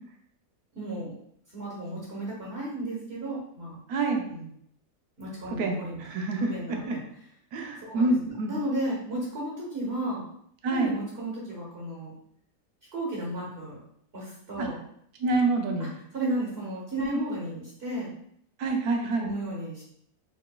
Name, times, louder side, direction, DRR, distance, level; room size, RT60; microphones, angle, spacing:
voice 1, 0.7-1.1 1.5-3.8 4.3-4.5 5.2-7.0 7.8-10.2 10.7-12.1 12.9-13.8 14.1-14.8 15.8-18.1 19.2-19.8, right 1 dB, 40° right, -5 dB, 1.3 m, -34 dB
voice 2, 3.9-4.2 5.6-7.0 7.5-8.5 10.6-10.9 14.6-14.7 15.2-15.9 17.1-17.2 18.6-19.3, right 3 dB, 75° right, 3 dB, 1.1 m, -27 dB
4.7 x 3.5 x 2.3 m, 0.69 s
omnidirectional pair, 1.7 m